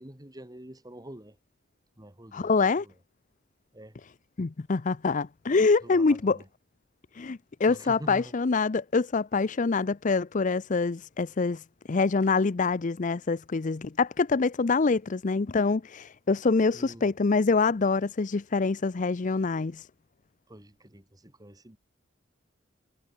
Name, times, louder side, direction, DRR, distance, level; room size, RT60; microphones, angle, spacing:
voice 1, 0.0-1.4 2.0-2.9 3.7-4.0 5.8-6.5 7.7-8.3 16.7-17.1 20.5-21.8, right 1 dB, 20° right, 2.2 m, -46 dB
voice 2, 2.3-2.8 4.4-6.4 7.1-11.6 11.9-19.9, left 4 dB, 40° left, 0.5 m, -25 dB
head